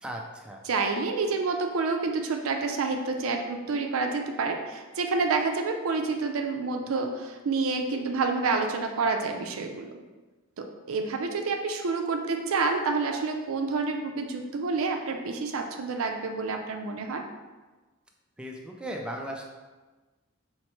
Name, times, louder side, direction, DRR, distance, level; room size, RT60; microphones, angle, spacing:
voice 1, 0.0-0.6 18.4-19.4, right 1 dB, 5° right, 0 dB, 0.3 m, -37 dB
voice 2, 0.7-9.9 10.6-17.2, right 4 dB, 75° right, 4 dB, 0.5 m, -28 dB
4.4 x 3.1 x 3.0 m, 1.3 s
head